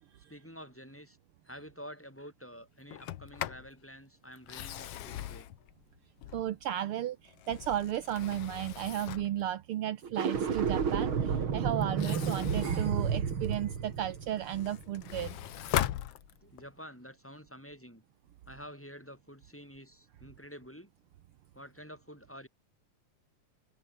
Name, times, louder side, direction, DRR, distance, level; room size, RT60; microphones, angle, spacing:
voice 1, 0.3-1.2 1.4-5.5 13.0-13.1 16.4-18.0 18.5-20.9 21.5-22.5, equal, 5° left, 7.4 m, -49 dB
Sliding door, 2.9-3.7 4.4-6.7 7.2-9.4 11.8-13.7 14.2-16.7, left 13 dB, 65° left, 1.7 m, -39 dB
voice 2, 6.3-15.3, right 12 dB, 75° right, 1.3 m, -34 dB
sound 1, 10.0-15.3, right 6 dB, 45° right, 2.9 m, -31 dB
omnidirectional pair, 3.5 m